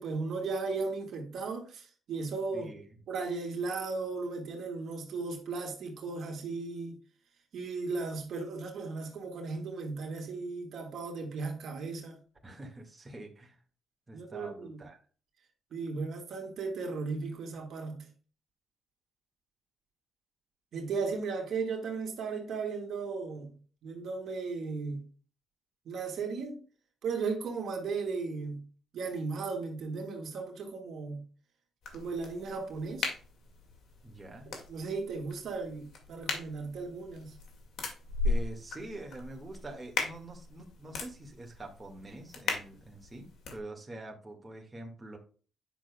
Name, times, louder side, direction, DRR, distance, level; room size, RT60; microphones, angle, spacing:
voice 1, 0.0-2.7 3.1-7.0 7.5-12.2 14.1-14.8 15.7-18.1 20.7-23.6 23.8-25.1 25.9-26.6 27.0-28.6 28.9-31.2 31.9-33.1 34.5-37.3, right 4 dB, 65° right, 1.8 m, -36 dB
voice 2, 2.5-2.8 12.4-13.6 14.1-15.0 34.0-34.5 38.2-45.2, right 2 dB, 20° right, 1.8 m, -45 dB
sound 1, 31.8-43.6, left 3 dB, 75° left, 2.0 m, -38 dB
9.0 x 6.1 x 2.3 m
cardioid pair, 90°, 0 cm